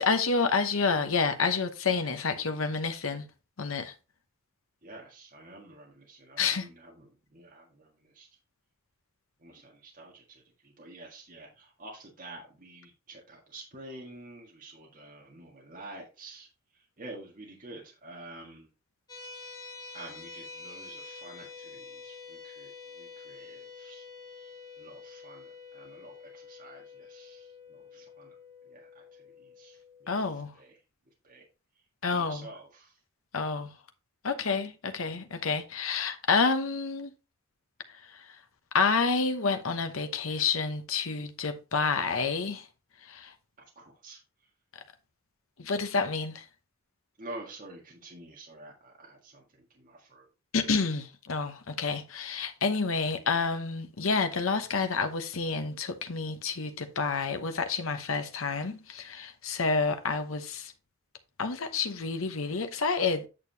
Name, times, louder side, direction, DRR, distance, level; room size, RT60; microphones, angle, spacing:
voice 1, 0.0-3.2 3.6-3.9 6.4-6.7 30.1-30.5 32.0-32.5 33.3-33.7 34.2-37.1 38.1-38.2 38.7-42.7 43.0-43.3 45.6-46.4 50.5-60.7 61.4-63.3, left 4 dB, 75° left, 0.9 m, -29 dB
voice 2, 4.8-8.3 9.4-18.7 19.9-24.1 24.4-28.3 28.6-30.8 31.2-31.4 32.1-33.0 43.6-44.2 47.2-50.3 50.7-50.8, right 2 dB, 40° right, 1.7 m, -49 dB
sound 1, 19.1-30.3, left 4 dB, 20° left, 1.7 m, -47 dB
8.7 x 6.6 x 2.8 m
head